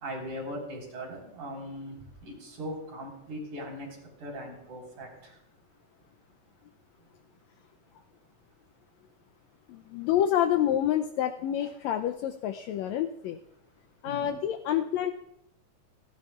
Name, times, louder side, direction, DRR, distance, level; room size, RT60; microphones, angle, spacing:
voice 1, 0.0-5.3 14.1-14.3, equal, 80° right, -1 dB, 5.6 m, -39 dB
voice 2, 9.7-13.4 14.0-15.1, left 10 dB, 80° left, 6 dB, 1.8 m, -28 dB
30.0 x 12.0 x 2.4 m, 0.78 s
omnidirectional pair, 3.3 m